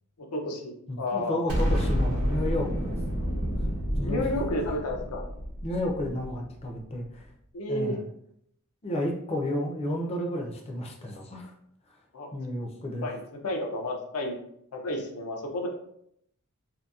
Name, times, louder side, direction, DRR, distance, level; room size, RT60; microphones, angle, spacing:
voice 1, 0.2-0.7 1.0-1.4 4.0-5.2 7.5-7.9 12.1-12.3 13.0-14.4 14.7-15.7, left 1 dB, 85° left, 2 dB, 0.5 m, -31 dB
voice 2, 0.9-3.3 4.0-4.2 5.6-7.3 7.7-8.0 8.8-11.5 12.3-13.1, left 1 dB, 25° left, 1 dB, 0.4 m, -32 dB
Explosion, 1.5-6.7, equal, 80° right, 0.8 m, -29 dB
2.7 x 2.5 x 2.3 m, 0.72 s
head